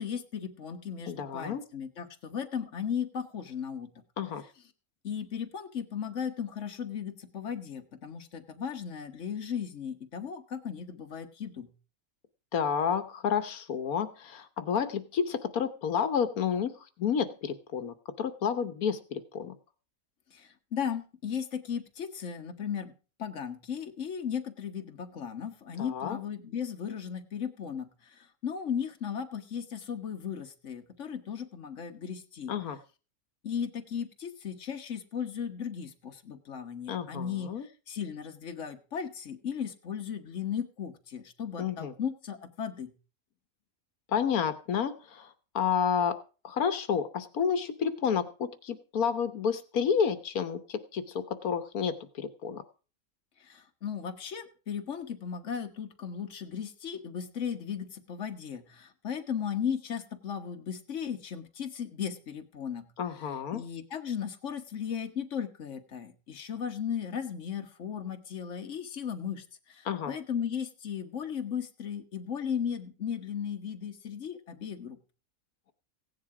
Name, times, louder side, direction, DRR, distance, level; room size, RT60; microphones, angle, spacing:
voice 1, 0.0-3.9 5.0-11.7 20.3-32.5 33.4-37.6 37.9-42.9 53.4-62.9 63.5-75.0, left 7 dB, 55° left, 5 dB, 1.6 m, -36 dB
voice 2, 1.1-1.6 4.2-4.4 12.5-16.7 17.0-19.6 25.8-26.2 32.5-32.8 36.9-37.7 41.6-41.9 44.1-46.2 46.4-52.6 63.0-63.6 69.8-70.1, left 7 dB, 85° left, 10 dB, 1.5 m, -30 dB
16.0 x 10.5 x 4.8 m, 0.36 s
omnidirectional pair, 1.5 m